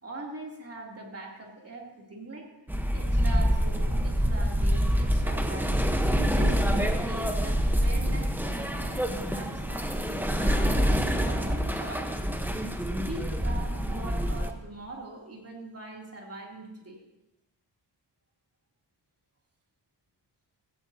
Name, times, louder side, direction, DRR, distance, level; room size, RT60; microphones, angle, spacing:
voice 1, 0.0-2.5 2.9-5.9 6.3-12.2 12.6-12.7 12.9-17.0, right 2 dB, 35° right, -1 dB, 3.0 m, -42 dB
sound 1, 2.7-14.5, equal, 5° right, 1.0 m, -26 dB
16.0 x 15.0 x 2.8 m, 0.96 s
wide cardioid pair, 105°, 43 cm